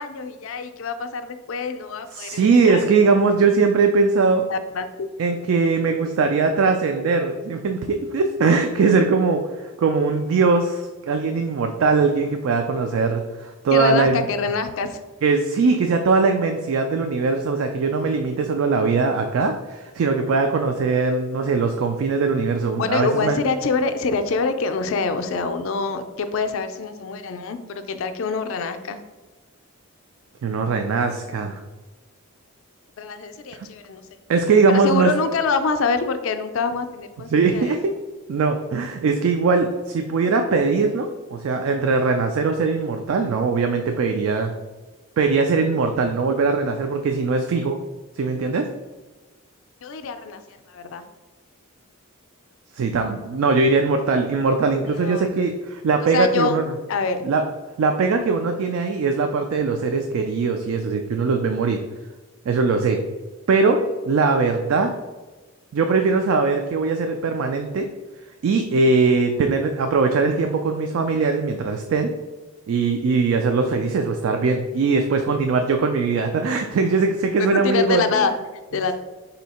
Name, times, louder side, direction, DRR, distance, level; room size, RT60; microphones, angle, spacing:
voice 1, 0.0-2.8 4.5-5.1 13.7-15.0 22.8-29.0 33.0-34.0 34.7-37.8 49.8-50.4 50.7-51.0 54.8-55.3 56.1-56.6 56.9-57.2 77.5-78.3 78.7-78.9, left 4 dB, 65° left, 9 dB, 0.4 m, -25 dB
voice 2, 2.1-4.4 5.2-14.3 15.2-23.4 30.4-31.6 34.3-35.1 37.3-37.9 38.3-44.5 45.2-47.8 48.2-48.7 52.8-56.7 57.2-57.4 57.8-61.8 62.5-63.0 63.5-63.8 64.1-64.9 65.7-67.9 68.4-72.1 72.7-78.3, right 4 dB, 65° right, 5 dB, 0.3 m, -21 dB
4.2 x 2.7 x 4.1 m, 1.2 s
head